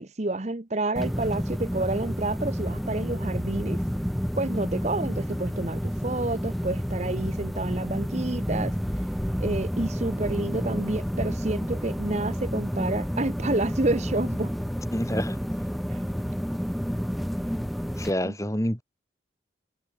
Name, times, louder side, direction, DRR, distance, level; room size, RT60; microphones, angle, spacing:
voice 1, 0.0-3.8 4.4-8.8 9.4-14.5 18.2-18.3, right 2 dB, 35° right, 1.0 m, -29 dB
sound 1, 1.0-18.1, equal, ahead, 1.4 m, -30 dB
voice 2, 14.9-15.4 17.9-18.8, equal, 15° left, 4.4 m, -28 dB
head